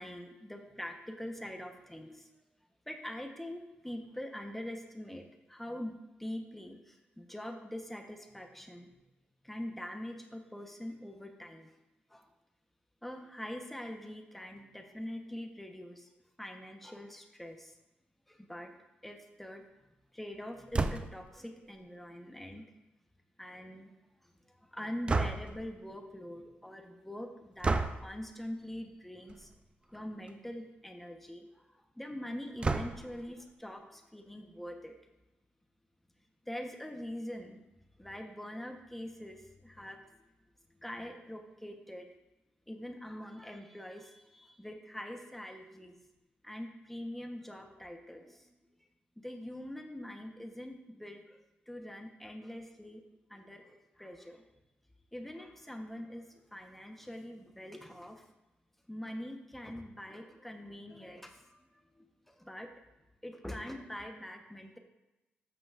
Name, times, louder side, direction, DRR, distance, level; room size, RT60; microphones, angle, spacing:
voice 1, 0.0-2.3 2.9-9.0 9.4-11.7 12.1-12.3 13.0-16.1 16.4-17.7 18.3-18.7 19.0-22.7 23.4-23.9 24.2-29.5 29.9-35.0 36.4-37.6 38.0-40.0 40.8-42.1 42.7-46.0 46.4-48.7 49.2-51.4 51.7-54.4 55.1-58.2 58.9-61.6 61.9-62.7 63.2-64.8, left 1 dB, 5° left, 3 dB, 0.9 m, -44 dB
door slam, 20.7-21.3 25.1-25.7 27.6-28.1 29.3-29.5 29.9-30.0 30.3-30.4 32.6-33.2, right 3 dB, 25° right, 0.4 m, -31 dB
13.0 x 5.9 x 2.4 m, 1.0 s
wide cardioid pair, 120°, 4 cm